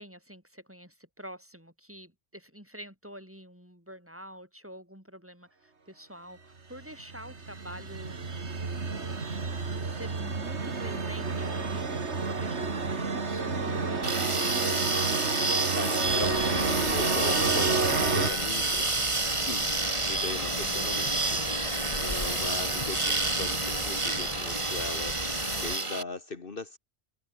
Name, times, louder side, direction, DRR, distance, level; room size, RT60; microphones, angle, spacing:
voice 1, 0.0-8.5 8.8-9.2 9.8-15.2 20.6-20.9, equal, 10° right, 5.6 m, -47 dB
sound 1, 6.7-18.3, right 4 dB, 85° right, 2.6 m, -30 dB
sound 2, 14.0-26.0, right 2 dB, 25° right, 1.8 m, -29 dB
voice 2, 15.7-19.7 20.1-25.2 25.5-26.8, left 3 dB, 55° left, 1.9 m, -39 dB
sound 3, 16.0-25.8, left 2 dB, 30° left, 2.9 m, -37 dB
omnidirectional pair, 1.1 m